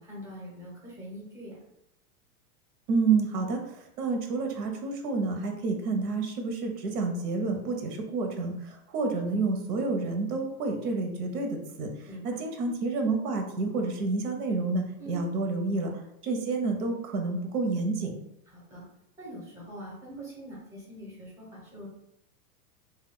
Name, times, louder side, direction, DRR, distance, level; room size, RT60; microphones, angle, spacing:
voice 1, 0.0-1.6 12.1-12.4 15.0-15.3 18.5-18.8 19.2-21.9, right 1 dB, 10° right, -6 dB, 0.6 m, -43 dB
voice 2, 2.9-15.9 16.2-18.1, right 3 dB, 85° right, 3 dB, 0.8 m, -29 dB
2.3 x 2.2 x 3.6 m, 0.76 s
supercardioid pair, 160°, 45 cm